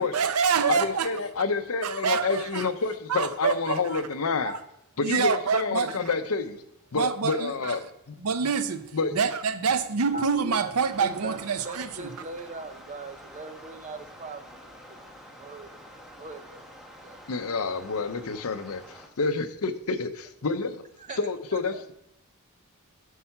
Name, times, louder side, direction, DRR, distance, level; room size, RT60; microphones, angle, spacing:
voice 1, 0.0-1.1 1.8-2.7 3.1-4.1 4.4-4.6 5.0-6.1 6.9-7.8 8.2-12.1, right 6 dB, 90° right, 0.7 m, -27 dB
voice 2, 0.7-4.5 5.0-6.6 6.9-7.8 8.9-9.2 17.3-18.8 19.2-20.8 21.2-21.9, left 4 dB, 75° left, 0.7 m, -28 dB
voice 3, 10.0-15.9 16.2-16.7 17.0-17.2 21.0-21.8, right 3 dB, 35° right, 0.7 m, -41 dB
sound 1, 10.8-19.1, equal, ahead, 1.0 m, -48 dB
8.2 x 5.6 x 5.7 m
head